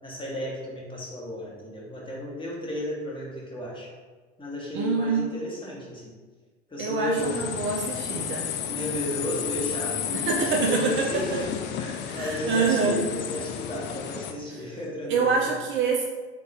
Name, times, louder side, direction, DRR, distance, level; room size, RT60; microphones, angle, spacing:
voice 1, 0.0-3.9 4.4-6.1 6.7-7.7 8.7-15.5, left 1 dB, 15° left, -4 dB, 1.4 m, -33 dB
voice 2, 4.7-5.3 6.8-8.5 10.1-11.2 12.1-13.0 15.1-16.1, right 4 dB, 35° right, 0 dB, 0.5 m, -26 dB
sound 1, 7.2-14.3, left 9 dB, 35° left, 0.4 m, -32 dB
3.9 x 3.7 x 3.5 m, 1.4 s
figure-of-eight pair, 75°, 34 cm